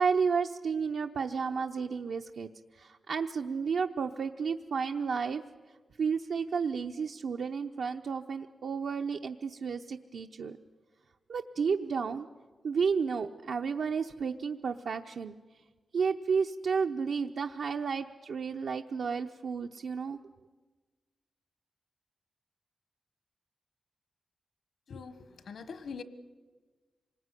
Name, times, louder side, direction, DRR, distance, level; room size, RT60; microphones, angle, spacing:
voice 1, 0.0-5.4 6.0-10.6 11.3-12.3 12.6-15.4 15.9-20.2, right 5 dB, 75° right, 0.7 m, -32 dB
voice 2, 24.9-26.0, left 5 dB, 70° left, 1.3 m, -43 dB
26.5 x 19.5 x 9.8 m
wide cardioid pair, 165°, 0 cm